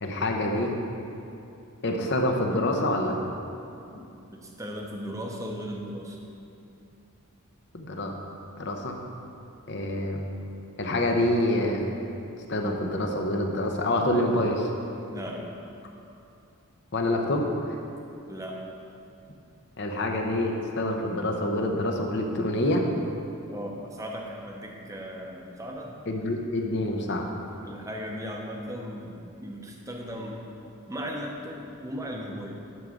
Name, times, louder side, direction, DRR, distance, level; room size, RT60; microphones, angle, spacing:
voice 1, 0.0-0.8 1.8-3.2 7.7-8.1 8.6-9.0 9.7-10.2 10.8-11.9 12.5-14.7 16.9-17.8 19.8-22.9 26.1-27.2, left 1 dB, 50° left, 2 dB, 0.8 m, -26 dB
voice 2, 3.9-6.2 15.1-15.5 18.3-18.6 23.5-26.0 27.6-30.4 30.9-32.6, equal, 15° right, 0 dB, 0.8 m, -37 dB
11.0 x 3.9 x 6.1 m, 2.7 s
head